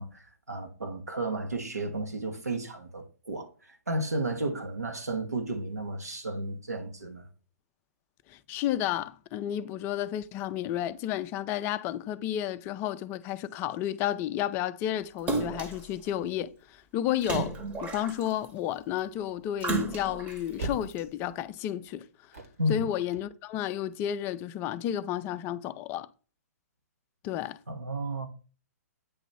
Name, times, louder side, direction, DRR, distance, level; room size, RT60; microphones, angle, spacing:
voice 1, 0.0-7.3 22.6-22.8 27.7-28.3, right 1 dB, 80° right, 1.2 m, -33 dB
voice 2, 8.3-17.5 17.8-22.1 22.7-26.1 27.2-27.6, left 11 dB, 25° left, 0.4 m, -32 dB
Splash splatter, 15.3-15.9 17.2-18.4 19.6-20.4 21.0-21.1, right 3 dB, 20° right, 1.0 m, -32 dB
sound 1, 19.1-24.0, right 3 dB, 65° right, 1.6 m, -41 dB
8.6 x 3.0 x 5.4 m
figure-of-eight pair, 120°, 8 cm